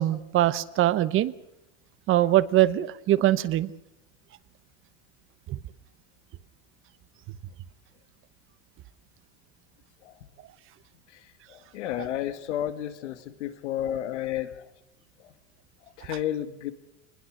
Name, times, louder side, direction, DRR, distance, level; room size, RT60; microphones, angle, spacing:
voice 1, 0.0-1.3 2.1-3.7, right 14 dB, 35° right, 16 dB, 1.0 m, -22 dB
voice 2, 11.5-14.7 15.2-15.3 16.0-16.7, left 11 dB, 90° left, 10 dB, 2.1 m, -32 dB
24.0 x 20.5 x 6.5 m, 0.86 s
supercardioid pair, 135°, 34 cm